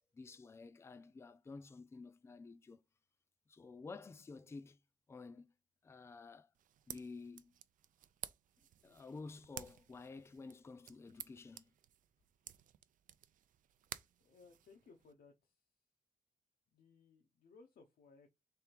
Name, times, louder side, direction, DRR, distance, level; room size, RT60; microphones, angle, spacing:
voice 1, 0.1-2.8 3.5-4.8 5.1-5.5 5.8-6.5 6.9-7.5 8.8-11.7, left 4 dB, 20° left, 0.4 m, -51 dB
sound 1, 6.5-15.1, right 10 dB, 65° right, 0.4 m, -54 dB
voice 2, 14.2-15.7 16.7-18.3, left 4 dB, 80° left, 0.9 m, -63 dB
3.5 x 3.4 x 4.4 m
wide cardioid pair, 160°, 15 cm